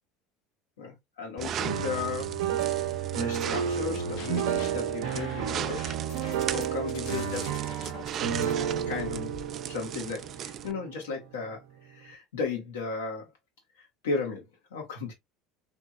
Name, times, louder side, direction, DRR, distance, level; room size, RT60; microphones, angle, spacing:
voice 1, 0.8-2.3 3.1-5.9 6.5-7.5 8.9-9.3 9.7-13.3 13.8-14.4 14.7-15.1, left 5 dB, 90° left, 1.4 m, -35 dB
sound 1, 1.4-10.7, right 9 dB, 50° right, 0.3 m, -37 dB
Piano Official Overture, 1.6-11.6, right 8 dB, 80° right, 0.7 m, -32 dB
sound 2, 3.9-4.7 5.0-9.5, left 5 dB, 70° left, 0.9 m, -44 dB
3.4 x 3.0 x 2.3 m
hypercardioid pair, 85°, 0 cm